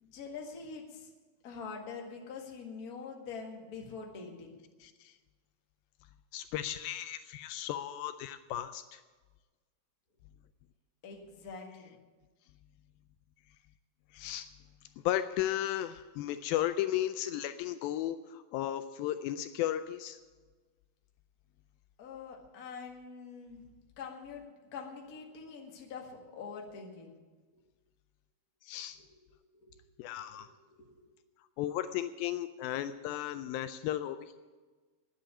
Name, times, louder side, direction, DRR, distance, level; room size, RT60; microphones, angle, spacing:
voice 1, 0.0-1.1 1.4-4.5 11.0-12.0 22.0-23.6 24.0-24.4 24.7-27.1 27.5-27.6 29.0-29.3 29.5-29.7 30.1-30.5 30.8-31.1, left 5 dB, 40° left, 1 dB, 1.4 m, -45 dB
voice 2, 4.8-5.1 6.3-9.0 14.1-14.5 15.1-20.2 28.6-29.0 30.0-30.5 31.6-34.3, left 12 dB, 80° left, 11 dB, 2.3 m, -35 dB
10.5 x 9.2 x 9.8 m, 1.3 s
omnidirectional pair, 4.3 m